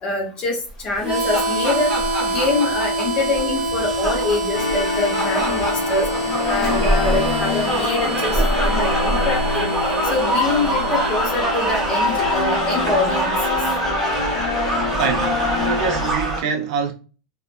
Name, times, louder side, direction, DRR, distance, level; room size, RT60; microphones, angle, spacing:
voice 1, 0.0-1.9 2.2-6.1 6.5-9.7 10.0-13.6, left 3 dB, 25° left, 0.8 m, -25 dB
sound 1, 0.9-16.4, right 1 dB, ahead, 1.0 m, -24 dB
Harmonica, 1.0-13.7, right 1 dB, 35° right, 1.0 m, -26 dB
sound 2, 4.5-16.1, left 5 dB, 60° left, 0.6 m, -27 dB
voice 2, 15.0-15.3 15.6-16.9, right 5 dB, 60° right, 0.5 m, -24 dB
3.0 x 2.0 x 2.5 m
supercardioid pair, 165°, 4 cm